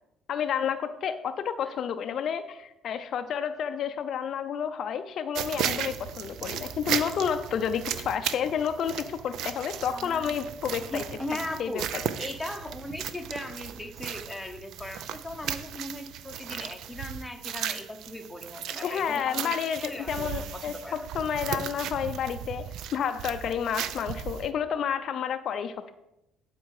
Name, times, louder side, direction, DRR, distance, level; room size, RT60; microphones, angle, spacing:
voice 1, 0.3-11.0 11.6-11.8 18.8-20.7 21.1-22.7 22.9-25.9, left 8 dB, 55° left, 9 dB, 0.5 m, -30 dB
sound 1, 5.3-24.5, right 9 dB, 70° right, 0.5 m, -36 dB
voice 2, 9.9-10.2 10.8-11.9 12.2-21.1, left 1 dB, 5° left, 5 dB, 0.9 m, -38 dB
11.5 x 4.6 x 4.8 m, 0.87 s
cardioid pair, 115°, 0 cm